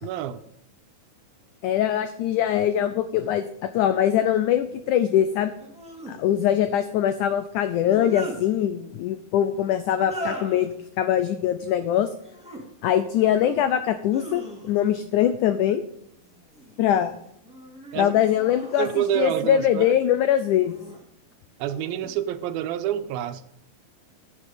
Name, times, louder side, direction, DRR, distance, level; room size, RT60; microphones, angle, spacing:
voice 1, 0.0-0.4 17.9-18.1 18.8-19.9 21.6-23.4, right 11 dB, 90° right, 11 dB, 2.5 m, -27 dB
voice 2, 1.6-5.5 6.1-12.1 12.8-15.8 16.8-17.1 18.0-20.8, left 10 dB, 80° left, 10 dB, 1.8 m, -22 dB
sound 1, 3.2-3.3 5.6-6.2 7.7-8.4 9.9-10.7 12.2-12.6 13.1-13.7 14.1-15.0 16.2-16.8 17.4-19.4 20.5-21.0 21.6-22.1, right 1 dB, ahead, 1.5 m, -39 dB
14.0 x 7.8 x 5.2 m, 0.73 s
omnidirectional pair, 4.2 m